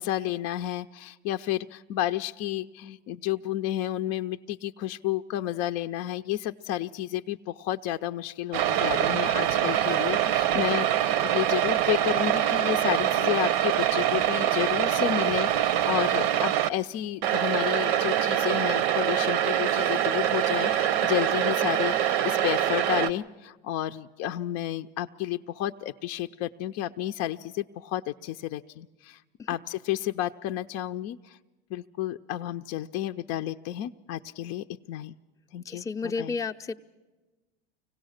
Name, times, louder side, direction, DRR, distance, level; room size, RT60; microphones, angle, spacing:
voice 1, 0.0-29.2 29.5-31.4 31.7-35.1 35.5-36.4, left 13 dB, 55° left, 7 dB, 0.6 m, -31 dB
sound 1, 8.5-16.7 17.2-23.1, right 11 dB, 70° right, 0.8 m, -24 dB
voice 2, 35.7-36.7, left 4 dB, 10° left, 3 dB, 0.6 m, -32 dB
25.0 x 17.5 x 6.4 m, 1.2 s
hypercardioid pair, 95°, 31 cm